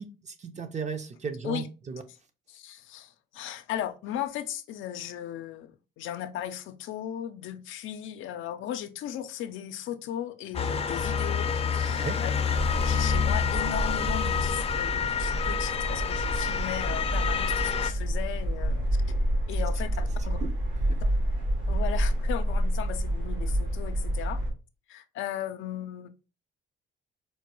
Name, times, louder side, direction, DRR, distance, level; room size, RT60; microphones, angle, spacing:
voice 1, 0.0-2.0 11.9-12.2 20.4-20.5 20.9-21.0, right 5 dB, 35° right, 0.6 m, -36 dB
voice 2, 2.5-5.7 6.0-12.3 12.8-18.9 19.5-20.4 21.0-21.1 21.7-24.4 24.9-26.2, left 11 dB, 80° left, 0.5 m, -36 dB
Motor vehicle (road) / Siren, 10.5-17.9, left 6 dB, 30° left, 0.5 m, -28 dB
sound 1, 12.5-24.5, right 1 dB, 75° right, 1.9 m, -29 dB
4.4 x 2.2 x 3.0 m
cardioid pair, 90°, 20 cm